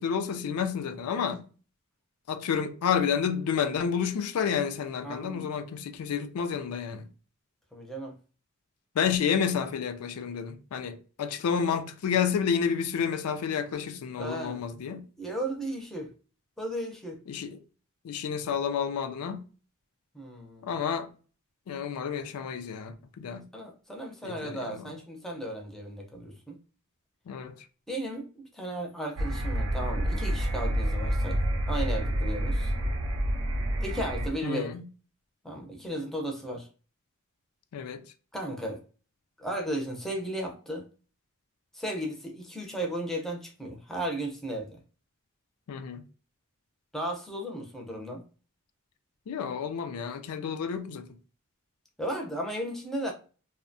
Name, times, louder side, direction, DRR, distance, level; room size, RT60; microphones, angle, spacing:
voice 1, 0.0-1.4 2.3-7.1 9.0-15.0 17.3-17.6 18.0-19.5 20.6-21.1 21.7-23.5 24.2-24.9 27.3-27.5 34.4-34.8 37.7-38.0 45.7-46.0 49.3-51.1, left 7 dB, 90° left, 0.4 m, -30 dB
voice 2, 5.0-5.5 7.7-8.2 14.2-14.6 15.2-16.1 16.6-17.2 20.1-20.7 23.5-26.6 27.9-28.3 28.5-31.4 31.7-32.7 33.8-34.7 35.4-36.7 38.3-38.8 39.4-40.9 41.7-44.8 46.9-48.2 52.0-53.1, right 1 dB, ahead, 0.4 m, -35 dB
sound 1, 29.2-34.3, right 1 dB, 75° right, 0.5 m, -28 dB
2.6 x 2.1 x 2.5 m
head